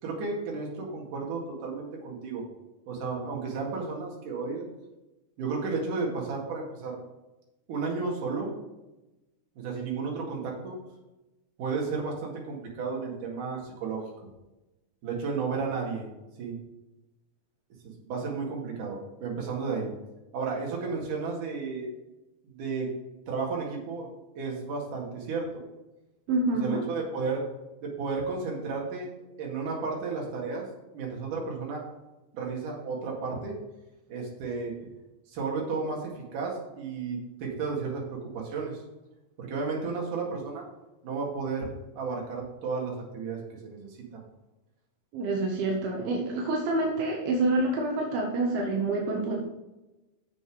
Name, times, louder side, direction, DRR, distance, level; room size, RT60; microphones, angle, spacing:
voice 1, 0.0-2.4 2.9-4.6 5.4-7.0 7.7-8.5 9.6-10.8 11.6-14.0 15.0-16.0 16.4-16.6 17.8-19.9 20.3-21.9 22.4-22.9 23.3-25.5 26.6-27.4 27.8-29.1 29.4-30.7 30.9-31.8 32.3-33.5 34.1-34.7 35.3-38.8 39.4-40.6 41.0-44.0, right 4 dB, 60° right, -2 dB, 3.5 m, -33 dB
voice 2, 26.3-26.8 45.1-49.4, right 2 dB, 80° right, 0 dB, 3.0 m, -27 dB
8.0 x 7.1 x 4.8 m, 1.0 s
omnidirectional pair, 4.3 m